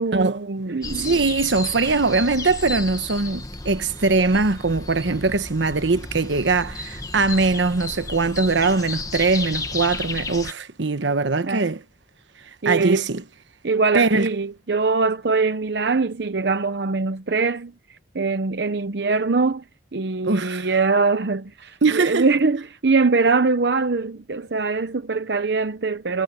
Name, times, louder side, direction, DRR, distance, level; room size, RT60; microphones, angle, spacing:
voice 1, 0.0-1.2 11.4-11.7 12.6-13.1 13.6-19.6 19.9-26.2, right 4 dB, 70° right, 0.7 m, -22 dB
sound 1, 0.8-10.5, left 3 dB, 20° left, 1.3 m, -33 dB
voice 2, 1.0-11.8 12.6-13.2 13.9-14.3 20.2-20.7 21.8-22.3, right 3 dB, 90° right, 1.1 m, -21 dB
head